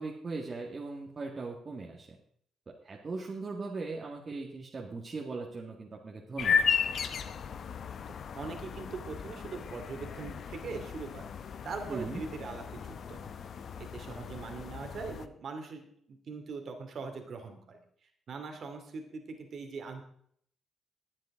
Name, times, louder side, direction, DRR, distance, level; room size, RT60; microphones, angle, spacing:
voice 1, 0.0-2.1 2.8-6.7 11.9-12.2, right 3 dB, 35° right, -2 dB, 2.0 m, -39 dB
sound 1, 6.4-15.3, left 6 dB, 55° left, 0.8 m, -35 dB
voice 2, 8.1-11.2 11.6-13.3 13.8-20.0, right 4 dB, 55° right, 5 dB, 2.6 m, -42 dB
21.5 x 7.5 x 3.8 m, 0.64 s
cardioid pair, 90°, 0 cm